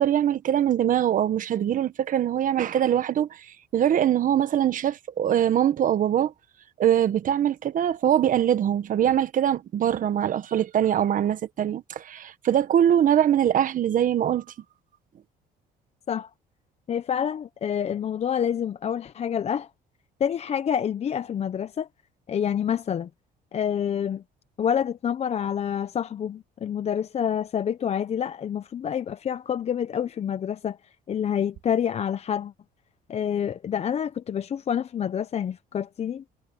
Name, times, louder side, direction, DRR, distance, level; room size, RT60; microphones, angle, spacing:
voice 1, 0.0-3.4 3.7-6.3 6.8-14.4, right 10 dB, 50° right, 1.4 m, -22 dB
voice 2, 16.9-19.7 20.2-21.9 22.3-23.1 23.5-24.2 24.6-30.8 31.1-32.5 33.1-36.2, left 8 dB, 40° left, 0.6 m, -27 dB
cardioid pair, 110°, 17 cm